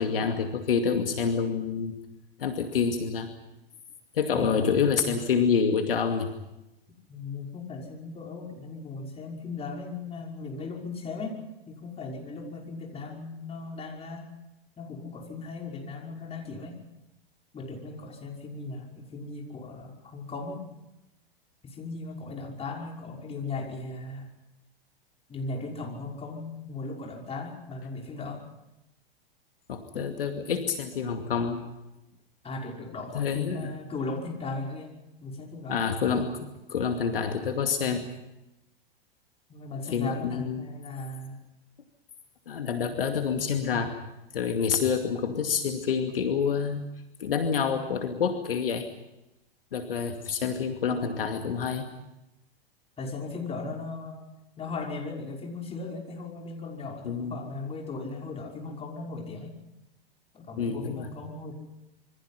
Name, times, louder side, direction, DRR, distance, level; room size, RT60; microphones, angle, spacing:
voice 1, 0.0-2.0 2.4-3.3 4.1-6.3 29.7-31.6 33.1-33.7 35.7-38.1 39.9-40.6 42.5-44.0 44.3-46.9 47.2-48.9 49.7-51.9 57.0-57.4 60.6-61.1, left 6 dB, 65° left, 5 dB, 2.4 m, -27 dB
voice 2, 4.3-4.8 7.1-11.4 11.7-14.3 14.8-16.8 17.5-20.6 21.6-24.3 25.3-28.4 29.9-30.1 32.4-34.9 35.2-35.8 39.5-41.4 53.0-54.3 54.6-59.6 60.3-61.5, left 3 dB, 20° left, 0 dB, 5.8 m, -37 dB
27.0 x 24.0 x 5.9 m, 0.92 s
figure-of-eight pair, 100°, 30 cm